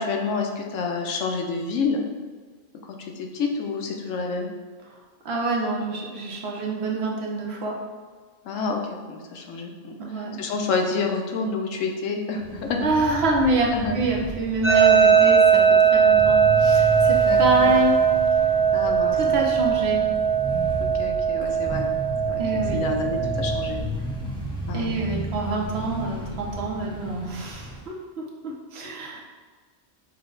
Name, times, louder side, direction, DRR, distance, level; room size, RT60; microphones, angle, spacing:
voice 1, 0.0-2.0 2.9-4.5 8.4-12.8 13.7-14.0 15.2-15.3 17.2-17.8 18.7-19.2 20.8-21.9 22.3-23.8 24.7-24.9 26.8-27.2, left 4 dB, 80° left, 3 dB, 1.0 m, -29 dB
voice 2, 5.2-7.8 10.0-10.4 12.8-18.0 19.1-20.1 22.4-22.8 24.7-29.2, right 2 dB, 60° right, -1 dB, 0.9 m, -26 dB
sound 1, 12.4-27.8, equal, 5° left, 0.4 m, -33 dB
sound 2, 14.6-23.7, right 7 dB, 10° right, 0.8 m, -19 dB
5.7 x 2.1 x 3.8 m, 1.5 s
omnidirectional pair, 1.3 m